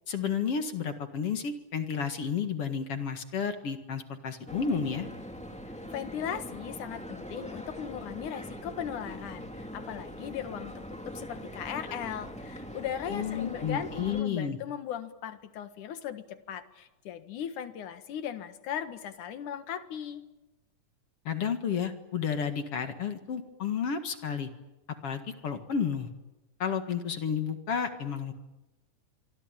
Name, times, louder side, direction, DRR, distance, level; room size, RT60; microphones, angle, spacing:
voice 1, 0.1-5.1 13.1-14.6 21.3-24.5 25.0-26.1 26.6-28.3, left 7 dB, 50° left, 7 dB, 2.5 m, -31 dB
sound 1, 4.5-14.2, equal, ahead, 2.0 m, -42 dB
voice 2, 5.9-20.2, left 9 dB, 75° left, 9 dB, 3.1 m, -38 dB
26.0 x 24.0 x 9.0 m, 1.0 s
omnidirectional pair, 3.6 m